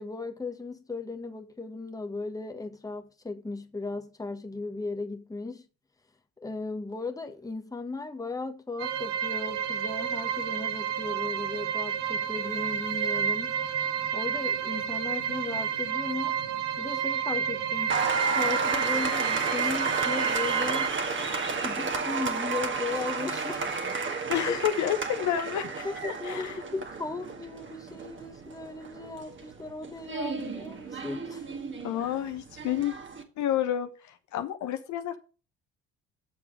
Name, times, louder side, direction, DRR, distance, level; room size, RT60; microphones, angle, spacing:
voice 1, 0.0-5.7 6.4-13.6 14.1-16.4 16.8-18.0 18.3-21.0 21.6-23.7 24.5-24.6 25.8-31.4, left 3 dB, 10° left, 1.4 m, -36 dB
sound 1, 8.8-20.9, right 8 dB, 70° right, 1.3 m, -30 dB
Applause, 17.9-33.2, right 4 dB, 30° right, 1.8 m, -32 dB
voice 2, 24.3-25.9 26.2-26.6 31.8-32.9 33.4-35.2, left 10 dB, 55° left, 1.1 m, -29 dB
9.0 x 7.0 x 4.8 m
figure-of-eight pair, 55°, 36 cm